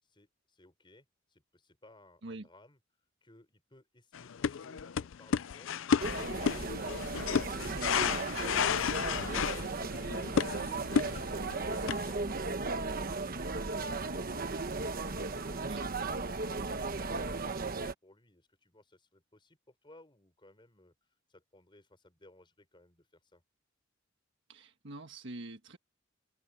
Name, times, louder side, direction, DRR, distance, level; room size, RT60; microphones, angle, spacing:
voice 1, 0.0-2.8 3.2-7.4 17.5-23.4, left 1 dB, 25° left, 6.1 m, -61 dB
sound 1, 4.1-12.1, left 7 dB, 80° left, 0.4 m, -32 dB
sound 2, 6.0-17.9, right 3 dB, 50° right, 1.1 m, -36 dB
voice 2, 24.5-25.8, right 2 dB, 65° right, 1.5 m, -45 dB
open air
head